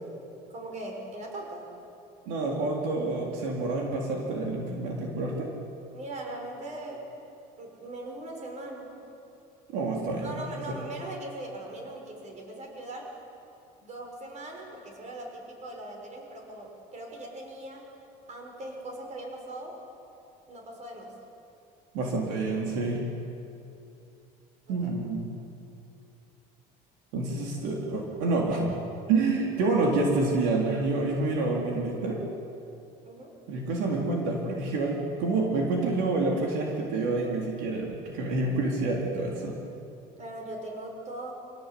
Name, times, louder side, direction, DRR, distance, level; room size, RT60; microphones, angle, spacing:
voice 1, 0.5-1.7 5.9-7.1 7.6-8.9 10.2-13.1 13.8-17.9 18.3-19.8 20.5-21.2 33.0-33.3 40.2-41.4, right 1 dB, 40° right, 1 dB, 6.6 m, -40 dB
voice 2, 2.3-5.5 9.7-10.7 21.9-23.0 24.7-25.3 27.1-28.8 29.1-32.2 33.5-39.6, right 3 dB, 80° right, -1 dB, 4.1 m, -28 dB
28.0 x 18.0 x 8.7 m, 2.8 s
cardioid pair, 115°, 18 cm